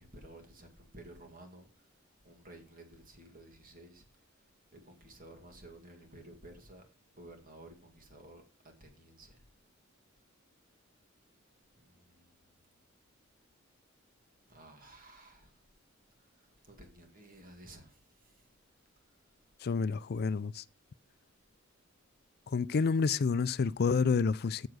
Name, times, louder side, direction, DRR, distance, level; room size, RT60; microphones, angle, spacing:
voice 1, 0.0-1.9 2.2-4.1 4.7-6.8 7.1-9.4 11.8-12.7 14.5-15.6 16.2-18.5, right 1 dB, 45° right, 2.1 m, -54 dB
voice 2, 19.6-20.6 22.5-24.7, left 5 dB, 50° left, 0.4 m, -29 dB
7.5 x 7.1 x 6.2 m
head